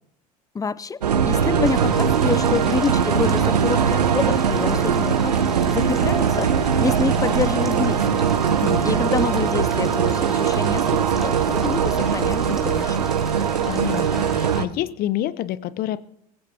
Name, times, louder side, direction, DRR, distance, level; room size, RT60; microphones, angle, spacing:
voice 1, 0.5-8.4 8.8-13.0, left 5 dB, 15° left, 0.6 m, -27 dB
sound 1, 1.0-14.7, right 7 dB, 85° right, 0.9 m, -21 dB
sound 2, 1.6-14.6, equal, ahead, 2.8 m, -37 dB
voice 2, 13.6-16.0, left 13 dB, 50° left, 0.9 m, -28 dB
21.5 x 16.0 x 2.9 m
figure-of-eight pair, 65°, 20 cm